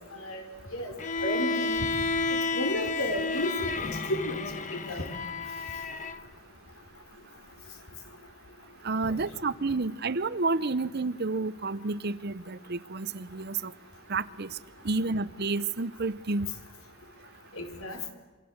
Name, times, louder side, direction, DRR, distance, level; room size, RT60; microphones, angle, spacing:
voice 1, 0.1-0.4 0.7-0.9 1.2-1.8 2.5-5.0 9.0-9.1 17.6-18.1, left 1 dB, 75° left, 5 dB, 4.9 m, -33 dB
Bowed string instrument, 1.0-6.2, left 3 dB, 35° left, 1.2 m, -31 dB
voice 2, 8.8-13.7 14.1-14.6 14.8-16.5, right 3 dB, 50° right, 17 dB, 0.8 m, -30 dB
27.5 x 25.0 x 8.0 m, 1.2 s
head